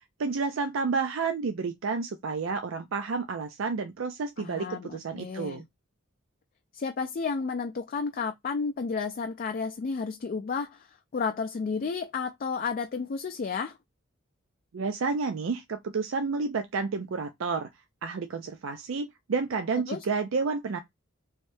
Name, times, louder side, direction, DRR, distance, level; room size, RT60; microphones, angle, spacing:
voice 1, 0.2-5.6 14.7-17.7 18.0-20.8, right 4 dB, 70° right, 0.4 m, -30 dB
voice 2, 4.4-5.6 6.7-13.8 19.9-20.0, left 5 dB, 45° left, 0.3 m, -32 dB
3.1 x 2.7 x 3.2 m
head